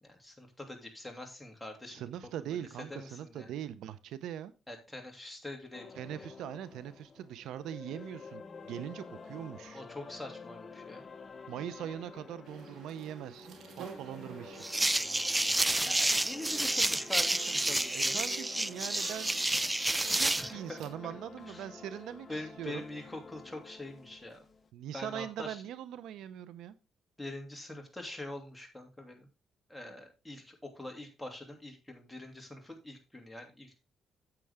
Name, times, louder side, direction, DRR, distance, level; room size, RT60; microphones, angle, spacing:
voice 1, 0.0-2.1 2.9-3.5 4.7-5.9 6.2-6.3 9.7-11.0 15.8-18.2 20.3-21.1 21.5-21.7 22.3-24.4 24.9-25.6 27.2-29.3 29.7-33.7, left 2 dB, 5° left, 2.7 m, -44 dB
voice 2, 1.9-4.5 6.0-9.8 11.5-15.0 17.9-22.8 24.7-26.8, right 10 dB, 85° right, 0.7 m, -42 dB
sound 1, 5.7-24.7, left 4 dB, 35° left, 0.9 m, -50 dB
sound 2, 12.4-20.9, right 6 dB, 70° right, 2.3 m, -48 dB
sound 3, 14.6-20.5, right 1 dB, 10° right, 0.4 m, -29 dB
9.0 x 7.7 x 3.6 m
cardioid pair, 90°, 0 cm